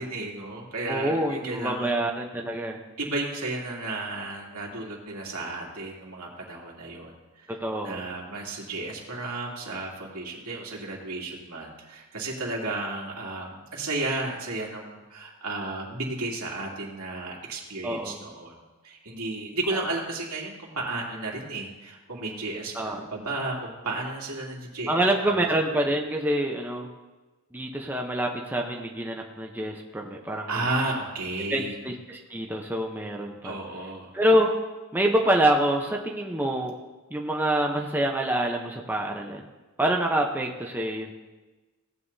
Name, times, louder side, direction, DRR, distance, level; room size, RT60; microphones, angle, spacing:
voice 1, 0.0-1.9 3.0-7.6 7.8-18.6 18.8-25.4 30.5-31.8 33.4-34.1, right 2 dB, 80° right, -3 dB, 2.7 m, -33 dB
voice 2, 0.9-2.8 7.5-8.0 17.8-18.2 22.7-23.0 24.9-26.9 27.5-30.5 31.5-33.5 34.1-34.5 34.9-36.7 37.1-39.4 39.8-41.1, right 1 dB, 10° right, 0 dB, 0.9 m, -26 dB
17.5 x 9.2 x 2.8 m, 1.2 s
head